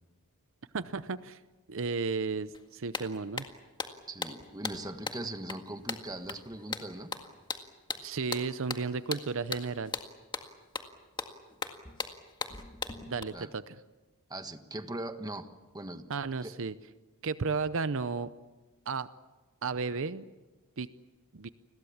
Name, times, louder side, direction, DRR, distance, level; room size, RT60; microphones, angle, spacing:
voice 1, 0.7-1.4 1.7-3.5 8.0-9.9 13.1-13.8 16.1-16.7 17.2-18.3 18.9-19.1 19.6-20.2 20.8-20.9 21.3-21.5, right 4 dB, 65° right, 13 dB, 0.7 m, -33 dB
sound 1, 2.5-2.6 2.9-13.2, left 4 dB, 20° left, 1.9 m, -39 dB
voice 2, 4.1-7.1 13.3-13.5 14.3-15.5 15.7-16.1 16.4-16.5, right 1 dB, 20° right, 8 dB, 1.5 m, -40 dB
30.0 x 21.5 x 7.3 m, 1.2 s
head